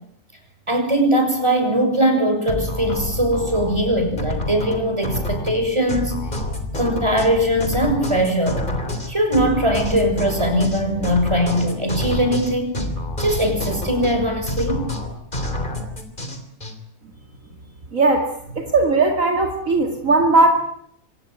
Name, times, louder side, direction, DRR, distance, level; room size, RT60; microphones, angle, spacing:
voice 1, 0.7-6.3 6.7-8.6 9.1-12.8 13.2-14.8, equal, 20° right, 4 dB, 6.8 m, -20 dB
sound 1, 2.5-16.7, left 1 dB, 30° left, 3.4 m, -28 dB
voice 2, 17.9-18.3 18.5-20.5, right 3 dB, 60° right, 3 dB, 2.7 m, -17 dB
25.5 x 17.5 x 9.4 m, 0.71 s
omnidirectional pair, 1.6 m